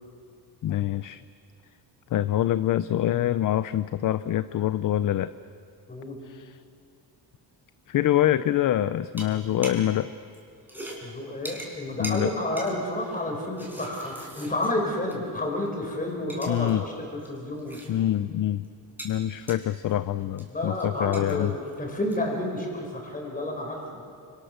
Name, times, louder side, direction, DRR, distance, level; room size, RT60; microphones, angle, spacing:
voice 1, 0.6-1.2 2.1-5.3 6.2-6.6 7.9-10.1 12.0-12.3 16.5-16.8 17.9-18.7 19.0-21.6, left 12 dB, 50° left, 14 dB, 0.6 m, -25 dB
sound 1, 9.1-10.0 10.2-15.4 15.7-15.8 16.1-16.8 17.0-18.2 18.5-22.4, right 1 dB, 5° right, 4.8 m, -43 dB
voice 2, 11.0-17.8 20.5-21.5 21.8-23.8, left 1 dB, 20° left, 0 dB, 5.1 m, -30 dB
29.5 x 25.5 x 6.7 m, 2.4 s
cardioid pair, 155°, 42 cm